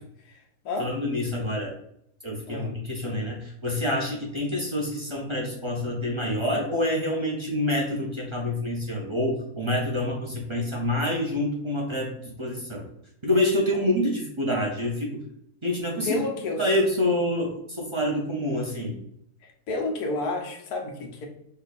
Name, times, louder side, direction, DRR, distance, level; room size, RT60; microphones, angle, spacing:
voice 1, 0.8-1.7 2.2-12.8 13.2-15.2 15.6-16.2 16.6-18.9, left 1 dB, 30° right, -2 dB, 0.6 m, -27 dB
voice 2, 16.0-16.6 19.7-21.3, left 2 dB, 85° left, 2 dB, 1.3 m, -30 dB
5.4 x 2.3 x 4.0 m, 0.73 s
omnidirectional pair, 1.6 m